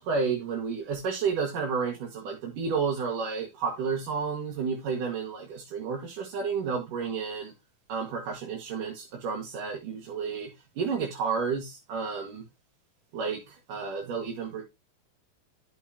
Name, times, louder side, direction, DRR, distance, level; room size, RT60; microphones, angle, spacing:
voice 1, 0.0-7.5 7.9-10.5 10.8-12.4 13.1-14.6, right 5 dB, 65° right, 0 dB, 3.2 m, -31 dB
12.0 x 6.6 x 2.9 m, 0.22 s
omnidirectional pair, 4.1 m